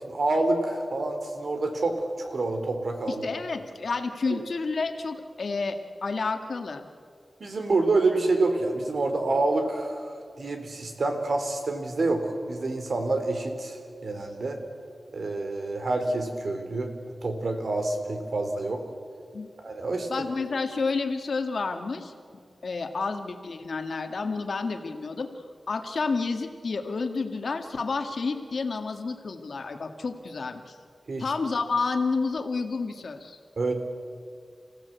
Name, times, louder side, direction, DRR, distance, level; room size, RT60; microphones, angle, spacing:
voice 1, 0.0-3.3 7.4-14.6 15.1-16.9 17.2-18.8 19.6-20.1 31.1-31.2 33.6-33.7, right 2 dB, 65° right, 5 dB, 3.4 m, -27 dB
voice 2, 3.1-6.9 19.3-19.5 20.1-22.1 22.6-25.3 25.7-30.8 31.2-33.4, left 4 dB, 65° left, 6 dB, 1.8 m, -30 dB
29.5 x 16.5 x 8.2 m, 2.2 s
wide cardioid pair, 100°, 0 cm